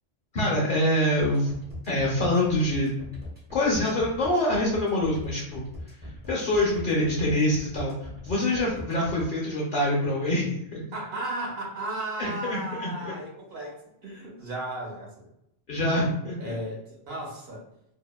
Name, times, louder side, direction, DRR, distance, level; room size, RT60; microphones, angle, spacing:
voice 1, 0.3-1.5 1.9-2.9 3.5-5.7 6.3-7.9 8.2-10.8 12.2-13.1 15.7-16.6, left 1 dB, 60° left, -4 dB, 0.6 m, -25 dB
sound 1, 1.2-9.2, left 1 dB, 10° right, 0.5 m, -40 dB
voice 2, 8.5-8.9 10.9-15.3 16.4-17.6, right 1 dB, 60° right, -3 dB, 0.9 m, -35 dB
2.7 x 2.1 x 2.2 m, 0.79 s
omnidirectional pair, 1.2 m